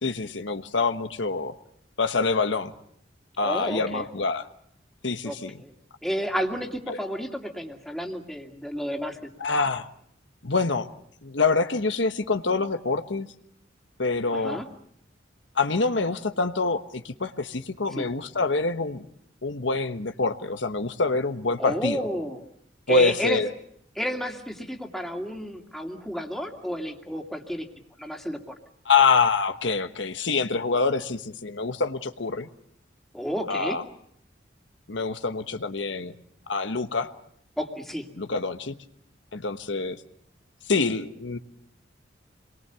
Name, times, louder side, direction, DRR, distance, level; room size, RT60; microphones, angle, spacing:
voice 1, 0.0-1.5 2.0-2.7 3.4-4.5 5.0-5.5 6.9-7.0 9.4-9.9 10.4-10.9 11.2-13.3 14.0-14.6 15.6-19.0 19.4-22.0 22.9-23.5 28.8-32.5 33.5-33.8 34.9-36.1 36.5-37.1 38.2-38.7 39.3-40.0 40.7-41.4, left 4 dB, 80° left, 9 dB, 1.2 m, -25 dB
voice 2, 3.4-4.0 5.2-5.7 6.0-9.2 14.3-14.7 17.9-18.1 21.6-22.4 22.9-23.4 24.0-27.7 28.0-28.6 33.1-33.8 37.6-38.1, equal, ahead, 2 dB, 2.5 m, -31 dB
28.0 x 22.0 x 6.9 m, 0.71 s
head